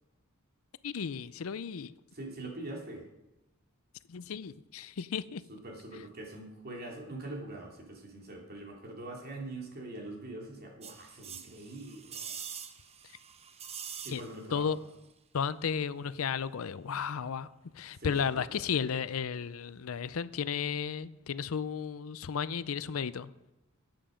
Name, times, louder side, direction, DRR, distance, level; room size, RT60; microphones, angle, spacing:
voice 1, 0.8-1.9 4.1-5.4 14.1-14.2 14.5-14.8 15.3-17.5 17.7-23.3, left 6 dB, 90° left, 16 dB, 0.5 m, -34 dB
voice 2, 2.1-3.1 5.5-12.4 14.0-14.7 17.9-18.6, right 2 dB, 50° right, 0 dB, 2.8 m, -43 dB
sound 1, 10.8-14.6 14.9-15.0, right 7 dB, 30° right, 0.8 m, -44 dB
13.0 x 9.1 x 5.1 m, 0.96 s
head